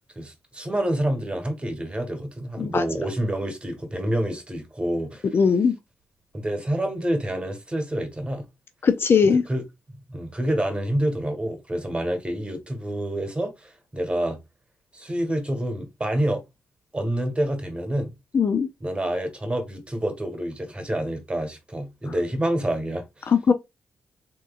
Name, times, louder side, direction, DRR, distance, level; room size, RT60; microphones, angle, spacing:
voice 1, 0.1-5.3 6.3-8.5 9.2-9.6 10.1-14.4 14.9-16.4 16.9-18.1 18.8-23.3, right 1 dB, 20° right, 1.4 m, -28 dB
voice 2, 5.3-5.8 8.8-9.4 18.3-18.7 23.3-23.5, left 6 dB, 50° left, 0.4 m, -19 dB
3.5 x 2.9 x 2.4 m
supercardioid pair, 50°, 5 cm